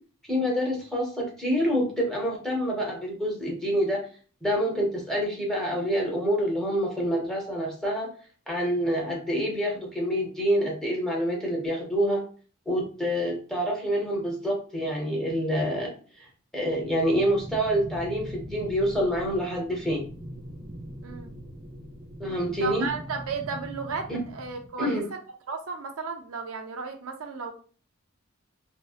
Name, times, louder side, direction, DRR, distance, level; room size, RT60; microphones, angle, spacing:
voice 1, 0.3-4.0 4.4-8.1 8.5-12.2 12.7-16.3 16.5-20.0 22.2-22.8 24.1-24.2 24.8-25.1, equal, ahead, -3 dB, 0.7 m, -27 dB
sound 1, 16.7-24.7, equal, 85° right, 1.1 m, -41 dB
voice 2, 21.0-21.3 22.6-25.2 25.5-27.5, right 5 dB, 70° right, 4 dB, 0.5 m, -34 dB
2.6 x 2.0 x 2.3 m, 0.40 s
head